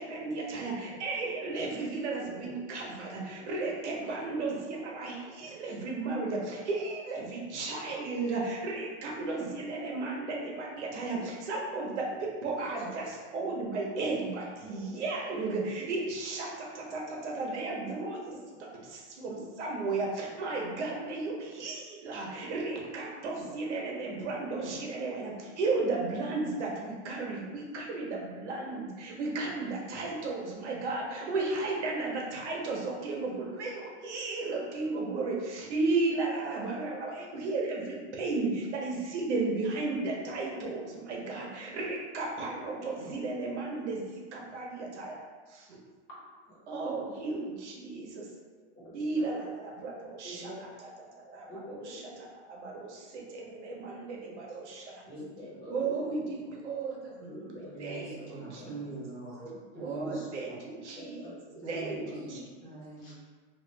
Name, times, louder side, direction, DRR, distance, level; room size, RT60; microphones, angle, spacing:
voice 1, 0.0-12.1 12.4-18.3 18.6-45.8 46.7-48.3 48.9-50.5 51.0-51.5 51.8-52.1 52.5-55.0 55.7-57.5 57.8-58.9 59.8-61.2 61.7-62.4, right 3 dB, 85° right, -2 dB, 1.0 m, -34 dB
voice 2, 2.2-2.5 3.4-3.5 4.2-4.5 5.5-5.6 7.5-7.9 8.7-8.8 9.9-10.0 11.2-11.3 12.1-12.7 14.7-15.0 18.2-18.7 19.2-19.3 22.3-22.5 23.2-23.4 23.8-24.0 46.1-46.2 46.5-47.1 48.7-49.3 50.2-50.5 51.5-52.2 52.7-52.8 55.1-56.1 57.2-58.7 59.4-60.4 60.6-62.3 63.0-63.1, equal, 30° left, -8 dB, 1.1 m, -47 dB
voice 3, 57.6-59.4 59.7-60.1 60.4-60.6 61.6-63.1, right 2 dB, 10° left, -12 dB, 0.6 m, -43 dB
3.1 x 2.5 x 3.2 m, 1.4 s
supercardioid pair, 180°, 34 cm